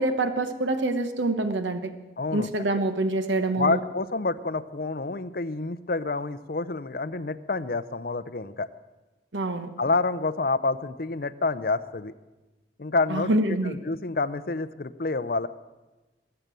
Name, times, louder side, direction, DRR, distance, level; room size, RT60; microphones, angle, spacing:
voice 1, 0.0-1.9 2.3-3.8 9.3-9.7 13.1-13.7, right 2 dB, 90° right, 9 dB, 1.1 m, -26 dB
voice 2, 2.2-2.8 3.6-8.7 9.8-12.1 12.8-13.4 13.6-15.5, left 3 dB, 55° left, 12 dB, 0.7 m, -28 dB
20.5 x 6.9 x 9.0 m, 1.1 s
head